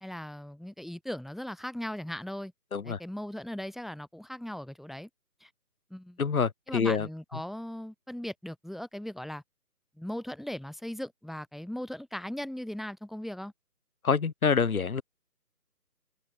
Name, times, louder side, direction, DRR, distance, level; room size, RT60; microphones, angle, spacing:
voice 1, 0.0-2.5 2.8-5.1 5.4-5.5 5.9-6.2 6.7-9.4 10.0-13.5, left 1 dB, ahead, 0.5 m, -38 dB
voice 2, 6.2-7.1 14.0-15.0, left 5 dB, 65° left, 1.4 m, -26 dB
figure-of-eight pair, 170°, 47 cm